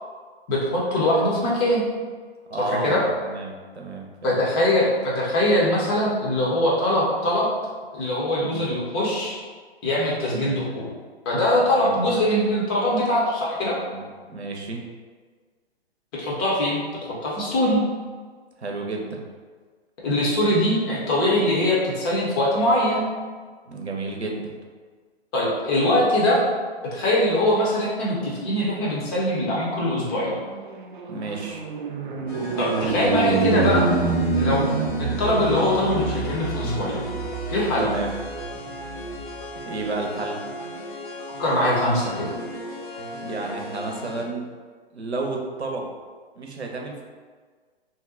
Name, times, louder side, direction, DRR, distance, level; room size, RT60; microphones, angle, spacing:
voice 1, 0.5-1.8 2.6-3.0 4.2-7.5 7.9-9.4 9.8-10.8 11.3-13.8 16.1-17.8 20.0-23.1 25.3-26.4 26.9-30.4 32.6-33.8 34.3-37.0 37.5-37.9 41.4-42.3, left 1 dB, 25° left, -5 dB, 0.7 m, -22 dB
voice 2, 2.5-3.0 3.2-4.4 8.4-8.6 10.3-10.5 11.6-12.2 13.9-14.8 18.6-19.2 23.7-24.4 31.1-31.6 37.8-38.1 39.7-40.4 43.2-44.5 44.9-45.9 46.4-47.0, right 3 dB, 85° right, 1 dB, 0.7 m, -31 dB
sound 1, 29.9-39.4, right 4 dB, 50° right, 0.4 m, -27 dB
sound 2, 32.3-44.2, equal, 50° left, 0.9 m, -35 dB
2.7 x 2.2 x 3.6 m, 1.5 s
figure-of-eight pair, 120°, 32 cm